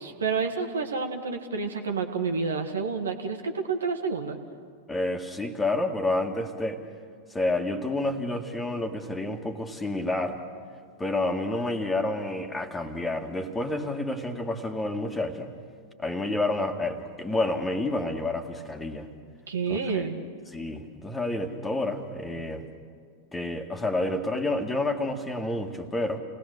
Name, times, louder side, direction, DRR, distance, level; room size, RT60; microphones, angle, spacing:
voice 1, 0.0-4.4 19.5-20.2, right 4 dB, 70° right, 5 dB, 1.9 m, -29 dB
voice 2, 4.9-6.8 7.3-10.4 11.0-15.5 16.0-19.1 19.7-20.1 20.5-22.7 23.3-26.2, left 2 dB, 10° left, 5 dB, 2.0 m, -29 dB
29.5 x 19.0 x 6.8 m, 2.1 s
figure-of-eight pair, 90°, 0 cm